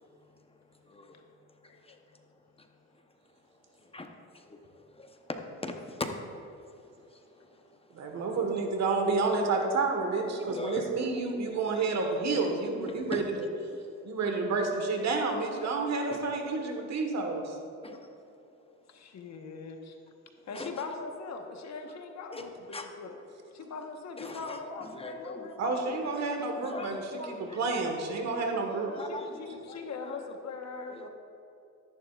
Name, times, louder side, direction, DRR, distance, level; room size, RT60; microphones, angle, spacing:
voice 1, 0.1-8.2 10.5-11.1 11.7-11.9 12.9-13.2 13.7-13.9 15.6-15.7 16.1-16.2 17.8-18.1 20.5-20.9 22.3-22.5 22.7-22.9 24.2-26.1 26.5-27.6 28.1-28.4 29.0-30.2 30.9-31.1, left 2 dB, 20° left, 4 dB, 0.9 m, -43 dB
voice 2, 1.7-2.0 18.9-20.0 20.5-23.2 23.5-25.9 28.9-31.1, left 4 dB, 60° left, 4 dB, 1.2 m, -41 dB
voice 3, 7.9-13.2 14.0-17.6 25.6-27.0 27.3-28.9, right 3 dB, 60° right, 3 dB, 1.5 m, -30 dB
13.0 x 10.5 x 2.4 m, 2.7 s
cardioid pair, 90°, 30 cm